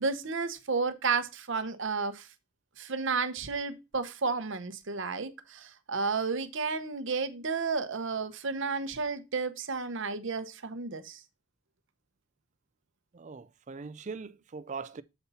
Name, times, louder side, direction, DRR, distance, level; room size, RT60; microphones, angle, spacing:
voice 1, 0.0-2.3 2.8-11.2, right 4 dB, 55° right, 0.8 m, -32 dB
voice 2, 13.1-15.0, right 4 dB, 35° right, 0.4 m, -41 dB
7.0 x 4.3 x 5.4 m
head